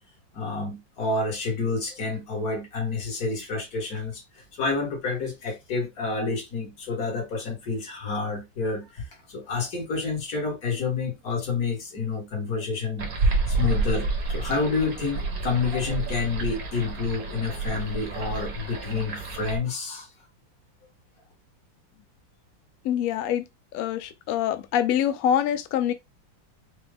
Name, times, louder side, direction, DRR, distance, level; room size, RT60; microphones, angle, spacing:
voice 1, 0.3-20.1, left 4 dB, 50° left, 1.8 m, -29 dB
sound 1, 13.0-19.6, right 3 dB, 55° right, 1.4 m, -29 dB
voice 2, 22.8-23.4 23.7-25.9, left 10 dB, 85° left, 0.7 m, -25 dB
5.0 x 2.3 x 3.3 m
omnidirectional pair, 2.1 m